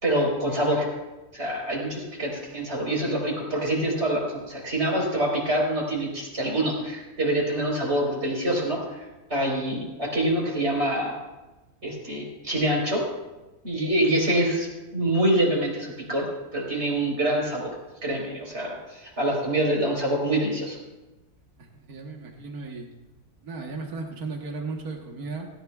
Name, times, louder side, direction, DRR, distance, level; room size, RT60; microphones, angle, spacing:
voice 1, 0.0-0.9 1.3-9.0 9.3-11.2 11.8-13.0 13.6-14.7 14.9-17.8 18.0-20.8, right 1 dB, 45° right, -2 dB, 4.7 m, -25 dB
voice 2, 21.7-22.9 23.4-25.5, right 3 dB, 80° right, 1 dB, 1.8 m, -35 dB
18.0 x 17.5 x 2.4 m, 1.1 s
omnidirectional pair, 1.6 m